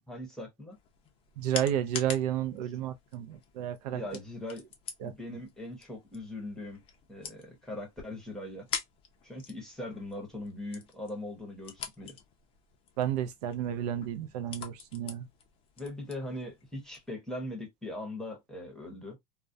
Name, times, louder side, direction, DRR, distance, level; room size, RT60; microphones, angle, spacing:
voice 1, 0.1-0.8 3.9-4.7 5.0-6.8 7.1-8.7 9.2-12.2 15.8-19.2, left 1 dB, ahead, 0.8 m, -40 dB
sound 1, 0.7-17.1, left 7 dB, 25° left, 0.4 m, -46 dB
voice 2, 1.4-4.0 5.0-5.4 13.0-15.3, right 10 dB, 70° right, 0.5 m, -32 dB
2.3 x 2.1 x 2.5 m
supercardioid pair, 150°, 21 cm